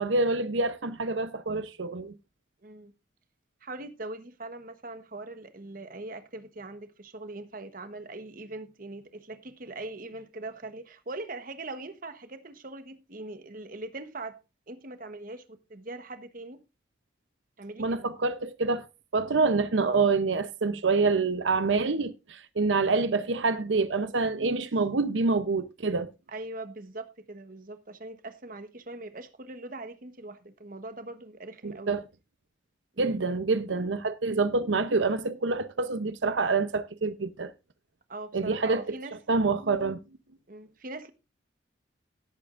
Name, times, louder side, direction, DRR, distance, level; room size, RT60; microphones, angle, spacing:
voice 1, 0.0-2.1 17.8-18.8 19.1-26.1 31.6-32.0 33.0-37.5 38.3-38.8 39.3-40.0, right 3 dB, 90° right, 0.7 m, -26 dB
voice 2, 2.6-2.9 3.6-14.4 14.7-16.6 17.6-18.1 26.3-32.0 32.9-33.2 38.1-39.2 40.5-41.1, right 2 dB, 50° right, 1.2 m, -41 dB
17.5 x 8.6 x 2.5 m
head